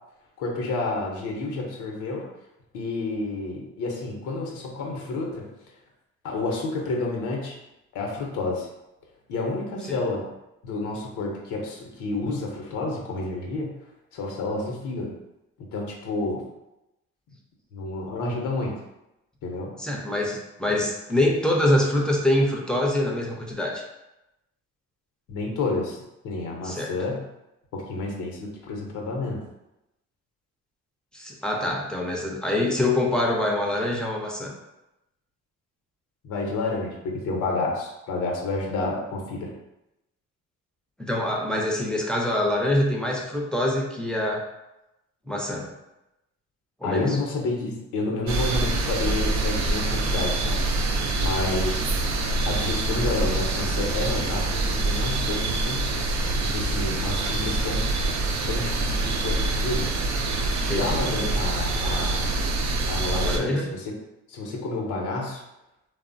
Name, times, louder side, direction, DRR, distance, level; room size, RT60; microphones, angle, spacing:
voice 1, 0.4-2.3 2.7-5.5 6.2-7.5 7.9-8.7 9.3-10.3 10.6-13.7 14.1-15.1 15.6-16.4 17.7-18.7 19.4-19.7 25.3-27.2 27.7-29.4 36.2-39.5 46.8-51.8 52.4-55.9 56.4-57.9 58.5-59.9 60.6-62.3 62.9-63.9 64.3-65.4, left 2 dB, 85° left, 0 dB, 0.6 m, -30 dB
voice 2, 19.8-23.8 26.6-26.9 31.1-34.5 41.0-44.5 45.3-45.7 46.8-47.2 51.4-51.5 60.7-61.4 63.2-63.7, left 1 dB, 5° left, -1 dB, 0.5 m, -25 dB
sound 1, 48.3-63.4, right 2 dB, 65° right, 0.5 m, -25 dB
3.0 x 2.0 x 2.5 m, 0.92 s
cardioid pair, 90°, 30 cm